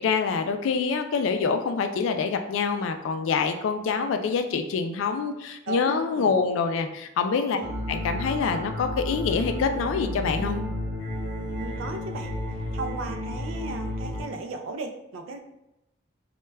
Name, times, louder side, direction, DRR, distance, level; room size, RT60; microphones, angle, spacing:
voice 1, 0.0-7.6 7.9-10.6, left 5 dB, 75° left, 8 dB, 0.3 m, -26 dB
voice 2, 5.7-6.3 7.5-7.7 11.5-15.4, right 3 dB, 90° right, 5 dB, 0.3 m, -36 dB
sound 1, 7.6-14.2, left 1 dB, 15° left, 0.8 m, -32 dB
2.2 x 2.1 x 3.2 m, 0.89 s
head